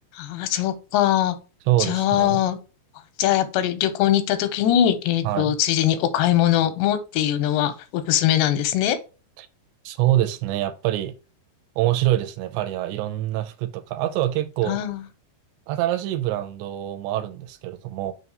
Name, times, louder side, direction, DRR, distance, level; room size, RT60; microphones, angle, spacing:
voice 1, 0.2-1.4 1.8-2.6 3.2-9.0 14.7-15.0, left 11 dB, 90° left, 2.8 m, -21 dB
voice 2, 1.7-2.4 5.2-5.6 9.4-9.5 9.9-11.1 11.8-14.8 15.7-18.1, right 14 dB, 85° right, 2.8 m, -25 dB
6.3 x 2.9 x 5.2 m
omnidirectional pair, 5.0 m